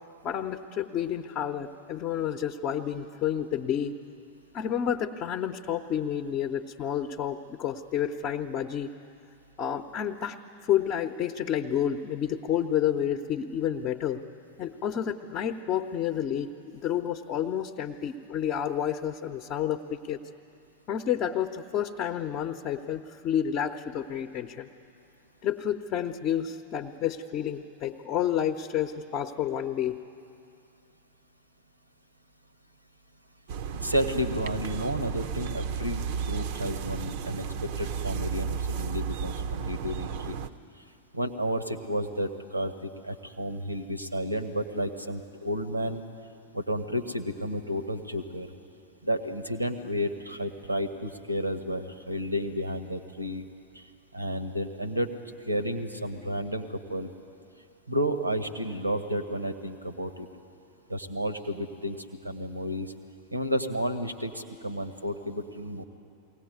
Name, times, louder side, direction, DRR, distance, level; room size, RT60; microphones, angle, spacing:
voice 1, 0.2-4.0 4.5-8.9 9.6-14.2 14.6-20.2 20.9-24.7 25.4-30.0, left 9 dB, 35° left, 5 dB, 0.8 m, -30 dB
sound 1, 33.5-40.5, right 7 dB, 50° right, 0.7 m, -33 dB
voice 2, 33.7-40.4 41.1-46.0 46.5-48.5 49.0-53.4 53.7-53.8 54.1-55.1 55.4-57.1 57.9-60.3 60.9-62.0 62.2-62.9 63.3-65.8, equal, 85° right, 10 dB, 1.3 m, -31 dB
22.0 x 17.5 x 9.5 m, 2.5 s
figure-of-eight pair, 90°, 0 cm